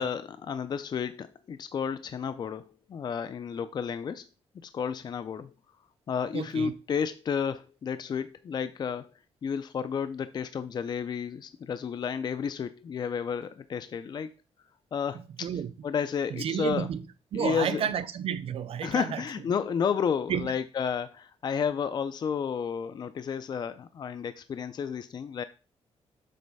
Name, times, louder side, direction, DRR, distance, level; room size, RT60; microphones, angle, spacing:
voice 1, 0.0-4.2 4.6-5.5 6.1-9.1 9.4-14.3 14.9-15.2 15.8-16.9 17.3-17.8 18.8-25.4, left 7 dB, 40° left, 0.4 m, -31 dB
voice 2, 6.3-6.7 15.1-15.7 16.3-17.0 17.3-19.2 20.3-20.5, right 8 dB, 65° right, 0.6 m, -31 dB
7.5 x 3.2 x 5.4 m
wide cardioid pair, 140°, 11 cm